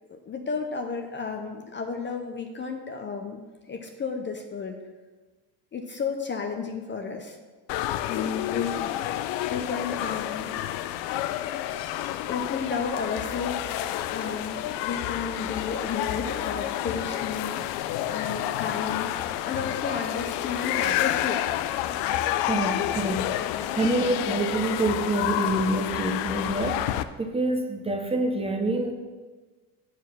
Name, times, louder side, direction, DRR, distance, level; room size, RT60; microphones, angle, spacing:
voice 1, 0.1-3.4 3.7-4.8 5.7-7.4 8.1-9.0 9.5-10.5 12.3-13.6 14.1-19.1 19.4-21.4 23.4-23.7, left 5 dB, 25° left, 4 dB, 0.6 m, -33 dB
sound 1, 7.7-27.0, left 13 dB, 80° left, 0.5 m, -29 dB
voice 2, 22.4-23.3 23.8-28.9, right 2 dB, 15° right, 3 dB, 0.7 m, -27 dB
7.5 x 4.8 x 5.9 m, 1.3 s
cardioid pair, 120°, 42 cm